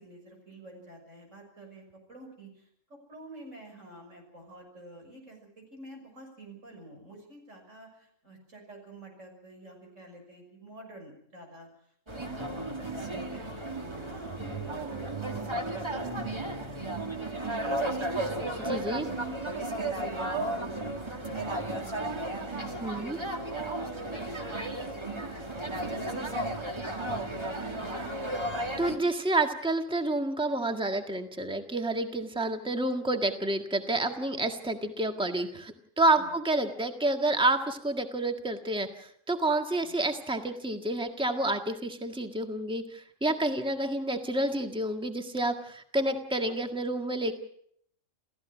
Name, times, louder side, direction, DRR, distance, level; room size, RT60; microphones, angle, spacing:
voice 1, 0.0-11.7 12.1-18.3 18.9-26.8 27.1-28.2 36.2-36.4 39.8-40.0, right 1 dB, 90° right, 2 dB, 6.5 m, -49 dB
sound 1, 12.1-29.0, right 1 dB, 20° right, 2.0 m, -34 dB
voice 2, 18.6-19.0 22.8-23.2 28.8-47.3, right 2 dB, 5° right, 5 dB, 1.6 m, -29 dB
28.5 x 15.5 x 6.2 m, 0.66 s
omnidirectional pair, 1.3 m